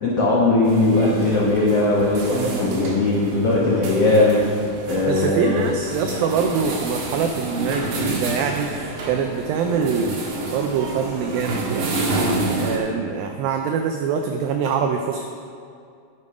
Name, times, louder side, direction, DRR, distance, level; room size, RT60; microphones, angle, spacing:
voice 1, 0.0-4.5 4.8-5.6, left 2 dB, 85° left, -5 dB, 1.3 m, -19 dB
sound 1, 0.6-12.8, right 2 dB, 60° right, 2.9 m, -29 dB
voice 2, 2.3-2.8 5.1-15.2, right 6 dB, 90° right, 4 dB, 2.0 m, -25 dB
12.0 x 6.9 x 4.9 m, 2.4 s
omnidirectional pair, 4.8 m